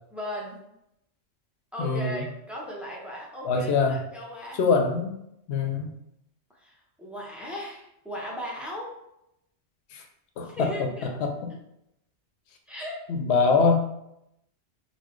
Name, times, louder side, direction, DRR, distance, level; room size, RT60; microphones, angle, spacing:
voice 1, 0.1-0.6 1.7-4.6 6.6-8.9 10.4-11.1 12.7-13.0, equal, ahead, -3 dB, 0.5 m, -37 dB
voice 2, 1.8-2.2 3.4-4.0 4.6-5.2 5.5-5.9 9.9-10.0 10.4-10.9 11.2-11.4 13.1-13.9, left 4 dB, 70° left, 4 dB, 0.8 m, -23 dB
4.0 x 2.1 x 3.0 m, 0.81 s
omnidirectional pair, 1.2 m